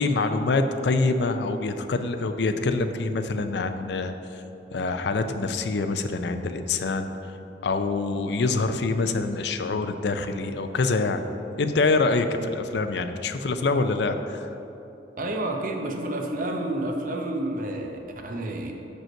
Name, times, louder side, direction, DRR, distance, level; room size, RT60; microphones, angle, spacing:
voice 1, 0.0-4.1 4.7-7.1 7.6-11.2 11.6-14.5, left 3 dB, 65° left, 8 dB, 0.4 m, -25 dB
voice 2, 15.2-18.7, right 1 dB, 45° right, 3 dB, 0.7 m, -30 dB
5.8 x 5.3 x 6.3 m, 2.9 s
head